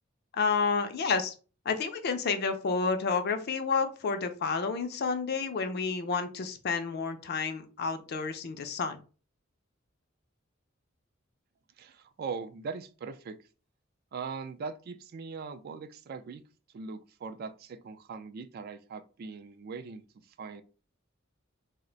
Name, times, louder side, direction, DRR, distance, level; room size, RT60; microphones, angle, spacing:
voice 1, 0.4-1.3 1.7-9.0, left 5 dB, 55° left, 0.4 m, -30 dB
voice 2, 11.8-13.4 14.1-16.4 16.7-20.6, right 5 dB, 50° right, 0.3 m, -40 dB
2.4 x 2.1 x 3.8 m
head